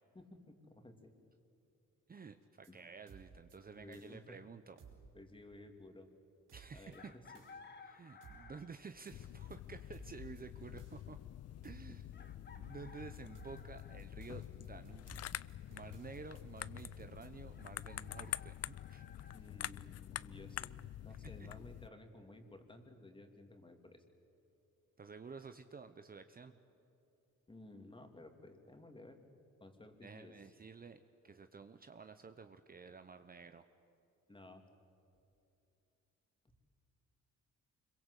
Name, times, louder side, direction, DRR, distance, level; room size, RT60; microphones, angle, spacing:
voice 1, 0.1-1.1 2.7-2.8 3.7-4.4 5.1-6.1 6.7-7.0 11.9-12.3 19.3-24.0 27.5-29.2 29.6-30.5 34.3-34.6, left 2 dB, 15° left, 5 dB, 2.9 m, -55 dB
voice 2, 2.1-4.8 6.5-7.1 7.8-11.2 11.6-12.0 12.6-15.2 15.7-19.3 21.2-21.5 25.0-26.6 30.0-33.7, right 5 dB, 30° right, 9 dB, 1.0 m, -52 dB
sound 1, 2.4-2.7 3.1-3.6 3.9-4.2 4.8-5.1 6.5-7.0 7.3-7.6 8.2-8.5 9.1-9.6 9.9-10.4 10.8-11.0 11.6-11.9 13.1-17.3, right 6 dB, 85° right, 5.1 m, -58 dB
Chicken rooster, 6.9-8.9 10.6-10.7 12.1-14.0 17.5-19.4, left 4 dB, 35° left, 1.8 m, -58 dB
sound 2, 9.1-21.9, left 12 dB, 55° left, 0.5 m, -47 dB
25.5 x 22.5 x 8.4 m, 2.7 s
cardioid pair, 90°, 30 cm